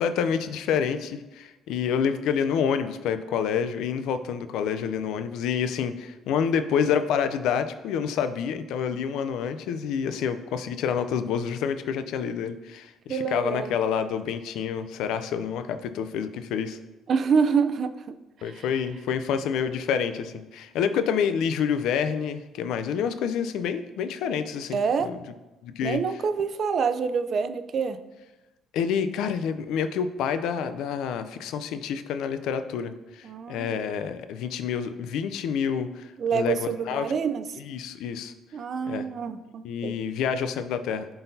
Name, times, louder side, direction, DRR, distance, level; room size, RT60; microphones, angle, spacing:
voice 1, 0.0-16.8 18.4-25.2 25.6-26.0 28.7-37.1 37.6-38.3 38.9-39.1 39.6-41.1, left 7 dB, 80° left, 10 dB, 0.4 m, -28 dB
voice 2, 13.1-13.8 17.1-17.9 18.6-18.7 24.7-25.1 25.8-28.0 33.2-33.8 36.2-37.4 38.5-40.0, right 6 dB, 50° right, 11 dB, 0.4 m, -26 dB
11.0 x 3.9 x 2.7 m, 1.1 s
cardioid pair, 90°, 0 cm